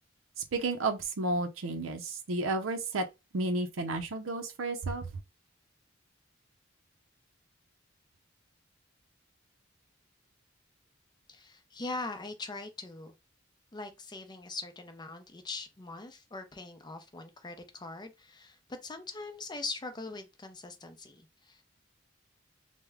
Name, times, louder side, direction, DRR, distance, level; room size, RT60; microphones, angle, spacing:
voice 1, 0.5-3.0 3.3-5.1, right 2 dB, 90° right, 0.6 m, -32 dB
voice 2, 11.3-13.1 13.7-21.6, left 3 dB, 20° left, 0.5 m, -42 dB
3.4 x 2.1 x 3.4 m
head